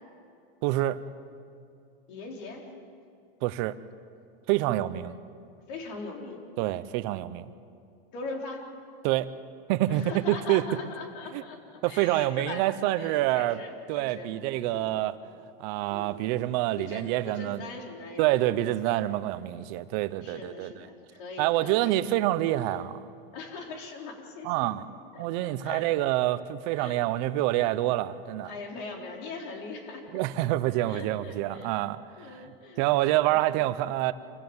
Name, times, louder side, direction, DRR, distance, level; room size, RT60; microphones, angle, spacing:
voice 1, 0.6-1.0 3.4-3.8 4.5-5.2 6.6-7.5 9.0-9.3 9.7-10.6 11.3-11.4 11.8-13.6 13.9-15.2 15.6-17.6 18.2-20.9 21.4-23.0 24.4-24.9 25.2-28.5 30.1-32.5 32.8-34.1, right 15 dB, 50° right, 14 dB, 1.0 m, -27 dB
voice 2, 2.1-2.7 5.0-5.2 5.7-6.4 8.1-8.7 9.9-12.6 12.9-14.9 15.9-16.2 16.8-19.0 20.1-21.9 23.3-24.7 25.1-26.1 26.8-27.0 27.5-27.8 28.4-30.2 30.6-31.7 32.2-33.7, left 3 dB, 60° left, 1 dB, 4.3 m, -41 dB
27.0 x 15.5 x 7.2 m, 2.4 s
supercardioid pair, 140°, 30 cm